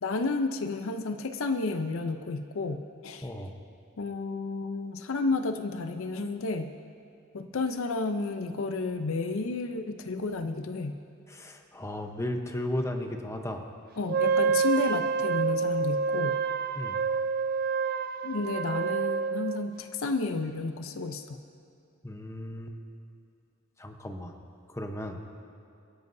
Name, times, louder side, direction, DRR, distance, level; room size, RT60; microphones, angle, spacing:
voice 1, 0.0-3.3 4.0-6.7 7.3-11.0 14.0-16.4 18.2-21.4, left 3 dB, 65° left, 8 dB, 0.6 m, -31 dB
voice 2, 3.2-3.6 11.3-13.7 16.7-17.0 22.0-22.7 23.8-24.3 24.7-25.2, left 1 dB, 15° left, 4 dB, 0.9 m, -35 dB
Wind instrument woodwind instrument, 14.1-19.7, right 5 dB, 45° right, 0.4 m, -28 dB
27.5 x 10.5 x 2.7 m, 2.6 s
head